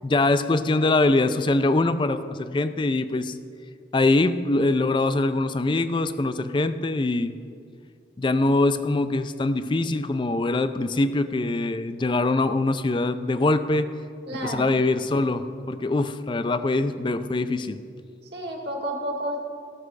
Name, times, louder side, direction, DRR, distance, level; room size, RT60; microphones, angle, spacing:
voice 1, 0.0-3.4 3.9-7.3 8.2-13.9 14.4-17.8, left 2 dB, 25° left, 11 dB, 0.4 m, -23 dB
voice 2, 14.3-14.8 18.3-19.4, equal, 65° right, -1 dB, 1.8 m, -30 dB
15.0 x 6.4 x 4.7 m, 2.3 s
head